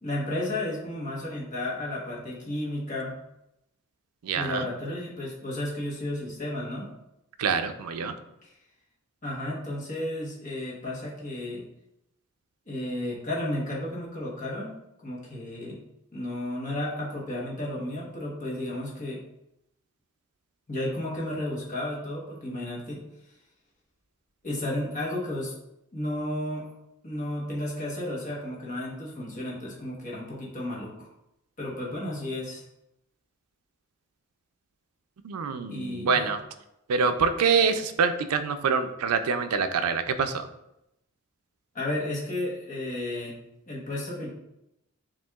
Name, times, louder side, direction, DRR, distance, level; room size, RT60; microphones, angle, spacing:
voice 1, 0.0-3.1 4.3-6.9 8.4-8.5 9.2-11.6 12.7-14.7 15.0-15.8 16.1-19.2 20.7-23.0 24.4-25.5 25.9-26.7 27.0-31.1 31.6-32.6 35.7-36.3 41.7-43.3 43.7-44.3, left 1 dB, 35° left, -4 dB, 1.1 m, -33 dB
voice 2, 4.2-4.7 7.4-8.2 35.2-36.4 36.9-40.5, right 5 dB, 90° right, 9 dB, 0.4 m, -25 dB
7.2 x 2.6 x 2.3 m, 0.85 s
head